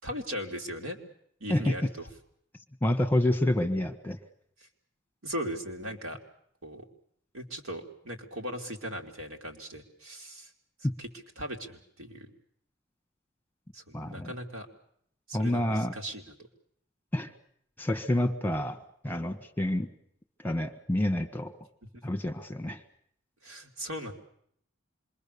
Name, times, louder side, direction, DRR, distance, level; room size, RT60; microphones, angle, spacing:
voice 1, 0.0-1.0 1.4-2.0 4.6-4.7 5.2-6.2 6.6-6.8 7.3-10.5 11.0-11.1 11.4-12.3 13.7-14.7 15.3-16.3 21.9-22.0 23.4-24.1, equal, 90° right, 2 dB, 3.3 m, -38 dB
voice 2, 2.8-4.2 10.8-10.9 13.9-14.3 15.3-15.9 17.1-17.3 17.8-18.8 19.0-19.9 20.4-21.5 22.0-22.8, left 1 dB, 10° left, 7 dB, 1.4 m, -28 dB
26.5 x 22.5 x 6.9 m, 0.68 s
head